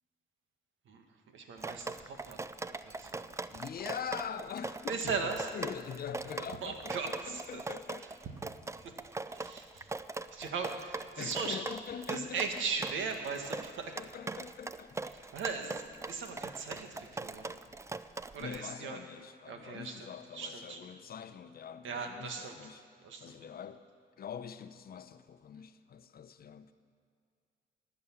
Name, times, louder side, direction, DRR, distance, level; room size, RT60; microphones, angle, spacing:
voice 1, 0.9-2.4 2.8-3.3 4.9-5.5 6.6-7.6 8.8-8.9 9.3-9.9 10.3-11.6 12.1-14.0 15.1-17.6 18.3-19.0 19.5-20.1 20.3-20.8 21.8-22.6 23.0-23.4, right 5 dB, 75° right, 4 dB, 1.7 m, -38 dB
Drip, 1.6-18.6, right 3 dB, 15° right, 0.4 m, -41 dB
voice 2, 3.5-5.1 5.5-8.2 10.3-10.5 11.2-12.6 14.0-15.1 18.4-22.8 23.2-23.8 24.2-26.7, left 7 dB, 50° left, 11 dB, 0.7 m, -43 dB
19.0 x 7.0 x 7.3 m, 2.2 s
cardioid pair, 90°, 20 cm